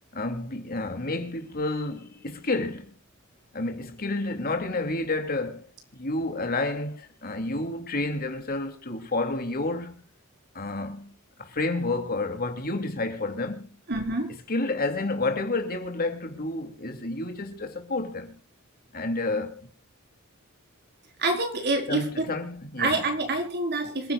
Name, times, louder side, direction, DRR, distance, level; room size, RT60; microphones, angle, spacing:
voice 1, 0.1-3.0 3.5-5.7 5.9-9.9 10.5-13.8 14.5-18.4 18.9-19.7 21.9-23.1, left 2 dB, 45° left, 2.8 m, -30 dB
voice 2, 13.9-14.3 21.2-22.2 22.8-24.1, right 2 dB, 50° right, 4.6 m, -27 dB
27.0 x 11.0 x 2.4 m
head